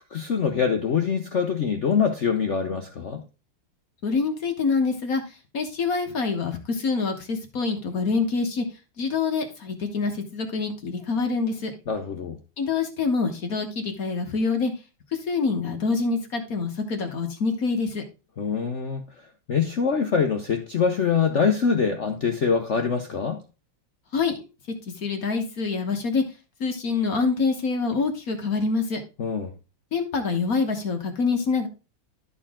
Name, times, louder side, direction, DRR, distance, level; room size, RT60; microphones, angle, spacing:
voice 1, 0.1-3.2 11.9-12.4 18.4-19.0 19.5-23.4 29.2-29.5, left 6 dB, 75° left, 0.6 m, -24 dB
voice 2, 4.0-8.6 9.0-11.7 12.6-14.7 15.1-18.0 24.1-24.3 25.0-26.2 26.6-29.0 29.9-31.7, left 4 dB, 50° left, 1.3 m, -26 dB
12.5 x 4.5 x 3.6 m
omnidirectional pair, 2.4 m